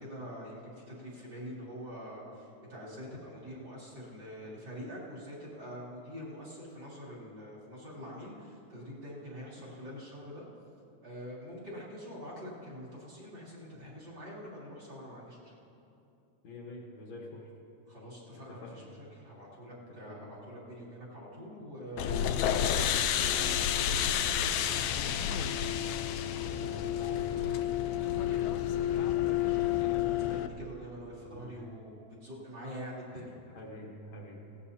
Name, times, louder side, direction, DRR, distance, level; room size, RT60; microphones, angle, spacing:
voice 1, 0.0-10.4 11.0-15.6 17.9-25.4 28.0-33.4, equal, 35° right, -7 dB, 3.1 m, -45 dB
voice 2, 16.4-17.5 18.3-18.9 19.9-20.3 26.2-27.6 31.2-31.6 33.1-33.3 33.5-34.5, left 1 dB, 65° left, -1 dB, 2.4 m, -48 dB
sound 1, 22.0-30.5, left 10 dB, 80° left, 1.8 m, -30 dB
19.0 x 17.0 x 2.8 m, 2.7 s
omnidirectional pair, 3.6 m